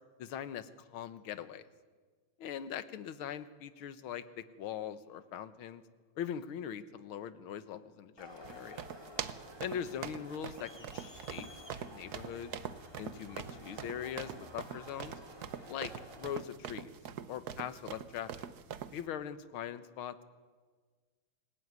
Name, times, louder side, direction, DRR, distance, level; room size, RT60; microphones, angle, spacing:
voice 1, 0.2-1.6 2.4-5.8 6.2-8.8 9.6-11.5 11.9-12.5 13.0-15.1 15.7-15.9 16.2-16.9 17.3-18.5 18.9-20.2, left 9 dB, 70° left, 13 dB, 1.9 m, -41 dB
Crowd, 8.2-16.4, left 1 dB, 10° left, 3.2 m, -52 dB
sound 1, 8.4-19.0, right 8 dB, 55° right, 1.3 m, -44 dB
27.5 x 17.5 x 9.5 m, 1.5 s
omnidirectional pair, 2.4 m